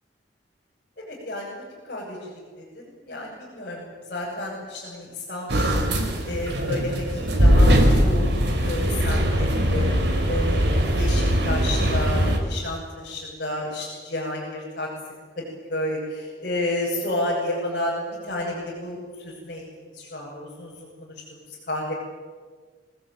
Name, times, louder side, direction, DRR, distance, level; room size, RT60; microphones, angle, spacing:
voice 1, 1.0-5.9 6.2-9.9 10.2-15.4 15.7-21.9, left 1 dB, 50° left, -7 dB, 7.7 m, -31 dB
sound 1, 5.5-12.4, equal, 70° right, 4.5 m, -21 dB
27.0 x 19.0 x 9.4 m, 1.5 s
head